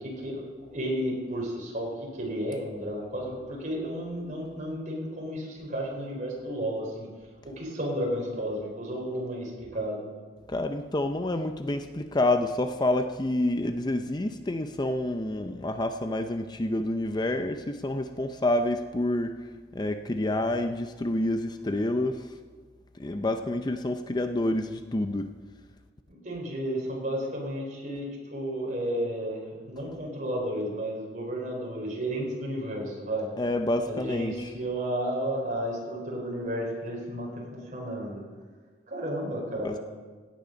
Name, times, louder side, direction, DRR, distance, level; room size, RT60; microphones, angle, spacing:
voice 1, 0.0-7.1 7.4-10.1 26.1-33.3 33.9-38.2 38.9-39.8, right 1 dB, 45° right, -2 dB, 4.3 m, -32 dB
voice 2, 10.5-19.4 19.7-22.3 23.0-25.3 33.4-34.5 39.6-39.8, left 1 dB, 25° left, 7 dB, 0.5 m, -28 dB
17.0 x 9.3 x 5.3 m, 1.5 s
head